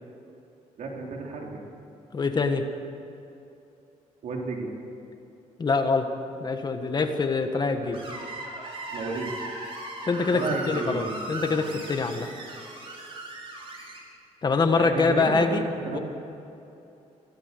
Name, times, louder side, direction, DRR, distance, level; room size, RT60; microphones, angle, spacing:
voice 1, 0.8-1.6 4.2-4.7 7.8-8.1 8.9-9.3 10.3-11.8 14.8-16.0, right 3 dB, 70° right, 0 dB, 3.7 m, -33 dB
voice 2, 2.1-2.6 5.6-6.1 6.4-8.0 10.0-12.3 14.4-15.6 15.9-16.0, left 4 dB, 30° left, 6 dB, 1.6 m, -24 dB
Screech, 7.9-14.0, right 2 dB, 45° right, 4.8 m, -38 dB
24.5 x 16.5 x 6.9 m, 2.8 s
cardioid pair, 130°, 13 cm